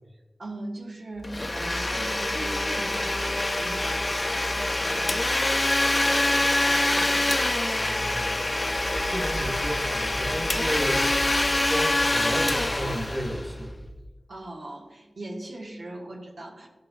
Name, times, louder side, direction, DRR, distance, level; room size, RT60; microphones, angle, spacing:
voice 1, 0.4-5.5 5.9-7.9 14.3-16.7, right 1 dB, 85° right, -2 dB, 1.3 m, -40 dB
Domestic sounds home sounds, 1.2-13.8, left 1 dB, 30° left, 0.5 m, -25 dB
voice 2, 7.7-8.3 9.1-11.4 11.7-13.7, equal, 10° right, 1 dB, 1.3 m, -33 dB
sound 1, 8.7-14.1, equal, 40° right, 0.6 m, -40 dB
11.5 x 5.3 x 2.3 m, 1.3 s
wide cardioid pair, 50°, 0 cm